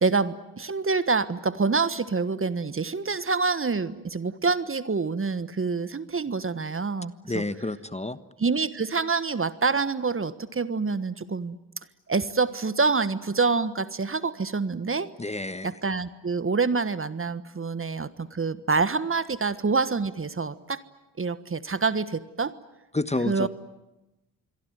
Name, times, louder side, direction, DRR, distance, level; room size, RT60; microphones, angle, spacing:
voice 1, 0.0-7.4 8.4-11.6 12.1-15.1 15.6-20.8 21.2-22.5 23.3-23.5, right 4 dB, 30° right, 14 dB, 1.4 m, -26 dB
voice 2, 7.2-8.2 15.2-15.7 22.9-23.5, left 2 dB, 15° left, 13 dB, 1.3 m, -29 dB
27.5 x 22.5 x 9.4 m, 0.99 s
hypercardioid pair, 45°, 44 cm